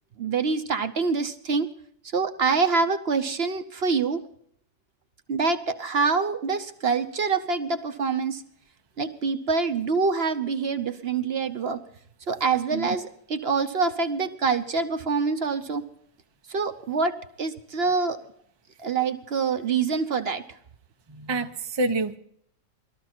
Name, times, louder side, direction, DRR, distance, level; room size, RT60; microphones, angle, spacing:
voice 1, 0.2-1.7 2.1-4.2 5.3-8.4 9.0-11.8 12.3-15.8 16.5-18.2 18.8-20.4, right 4 dB, 50° right, 8 dB, 0.9 m, -25 dB
voice 2, 21.1-22.2, right 2 dB, 30° right, 6 dB, 0.5 m, -27 dB
20.5 x 13.5 x 4.4 m, 0.67 s
omnidirectional pair, 1.6 m